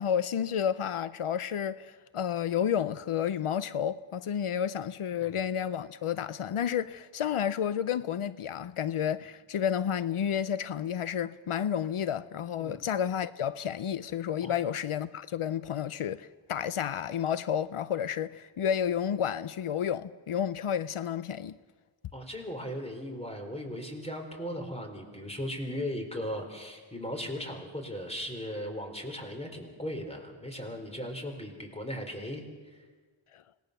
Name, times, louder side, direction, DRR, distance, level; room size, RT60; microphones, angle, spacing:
voice 1, 0.0-21.5 33.3-33.4, left 9 dB, 85° left, 0.6 m, -31 dB
voice 2, 22.1-32.4, equal, 10° left, 4.3 m, -37 dB
26.5 x 19.0 x 6.7 m
wide cardioid pair, 50°, 50 cm